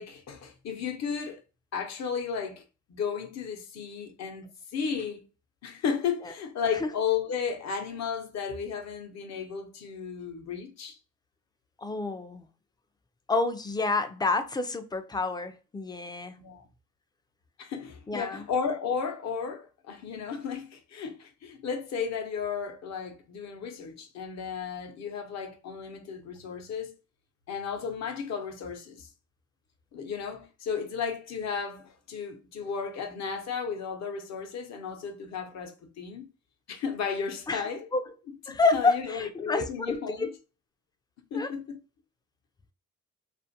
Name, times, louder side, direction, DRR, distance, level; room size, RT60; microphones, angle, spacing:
voice 1, 0.0-1.4 1.7-2.6 2.9-5.2 5.6-11.0 16.4-16.6 17.6-26.9 27.5-29.1 29.9-36.3 36.7-37.9 38.5-40.3 41.3-41.8, left 6 dB, 60° left, 0.7 m, -34 dB
voice 2, 11.8-12.5 13.3-16.3 18.1-18.5 37.5-37.6 37.9-38.0 38.5-40.3 41.3-41.5, left 3 dB, 15° left, 0.3 m, -28 dB
2.5 x 2.4 x 2.7 m
cardioid pair, 90°, 30 cm